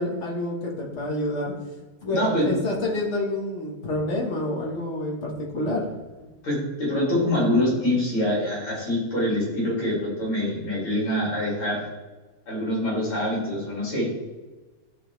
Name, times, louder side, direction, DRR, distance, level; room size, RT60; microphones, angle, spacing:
voice 1, 0.0-1.5 2.0-6.0, left 1 dB, 45° left, -2 dB, 1.1 m, -28 dB
voice 2, 2.1-2.6 6.4-11.8 12.5-14.1, left 1 dB, 70° left, -5 dB, 3.1 m, -25 dB
10.0 x 3.4 x 3.1 m, 1.2 s
omnidirectional pair, 2.4 m